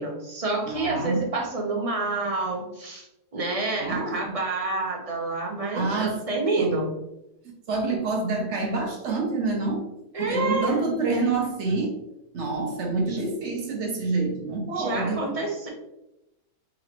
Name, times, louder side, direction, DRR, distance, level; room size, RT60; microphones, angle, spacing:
voice 1, 0.0-3.1 3.3-6.9 10.1-10.8 13.1-13.2 14.7-15.7, right 3 dB, 35° right, 0 dB, 0.6 m, -28 dB
voice 2, 0.6-1.3 3.8-4.3 5.7-6.2 6.6-6.8 7.7-9.9 10.2-12.0 12.3-15.2, right 3 dB, 60° right, 1 dB, 1.0 m, -27 dB
3.9 x 3.0 x 2.9 m, 0.88 s
omnidirectional pair, 1.5 m